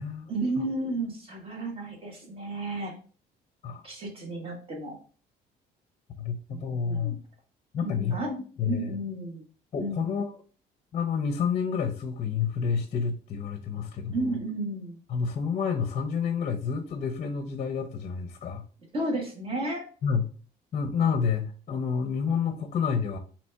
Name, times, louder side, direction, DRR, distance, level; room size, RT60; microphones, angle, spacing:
voice 1, 0.3-2.9 3.8-4.9 6.5-7.2 7.8-8.3 8.6-9.4 9.8-10.1 14.1-15.0 18.9-19.8 21.0-21.2, right 2 dB, 35° right, -1 dB, 1.7 m, -32 dB
voice 2, 6.2-7.2 7.7-9.0 9.7-10.3 10.9-14.3 15.1-18.6 20.0-20.3 20.7-23.2, left 6 dB, 40° left, 5 dB, 0.6 m, -29 dB
4.1 x 2.9 x 3.4 m, 0.39 s
cardioid pair, 110°, 17 cm